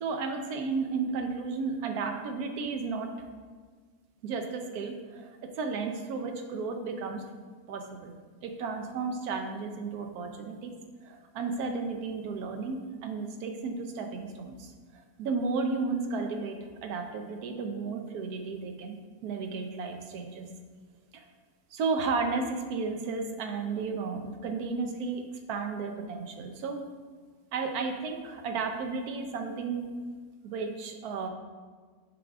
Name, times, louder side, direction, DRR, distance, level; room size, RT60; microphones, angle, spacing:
voice 1, 0.0-3.1 4.2-5.3 5.6-7.2 7.7-8.1 8.4-10.7 11.0-20.5 21.1-21.2 21.7-26.8 27.5-29.9 30.4-31.3, right 4 dB, 85° right, 4 dB, 1.2 m, -33 dB
8.4 x 3.5 x 3.5 m, 1.5 s
omnidirectional pair, 1.6 m